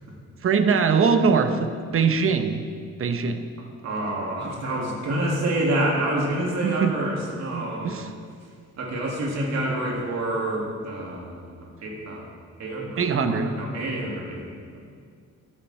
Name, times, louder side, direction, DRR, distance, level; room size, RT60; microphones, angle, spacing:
voice 1, 0.4-2.6 3.0-3.4 6.6-6.9 7.5-8.1 13.0-13.5, right 5 dB, 45° right, 8 dB, 1.1 m, -22 dB
voice 2, 3.8-7.9 8.8-12.3 12.6-14.8, right 1 dB, 60° right, -2 dB, 3.0 m, -28 dB
13.0 x 10.0 x 4.6 m, 2.1 s
cardioid pair, 90°, 30 cm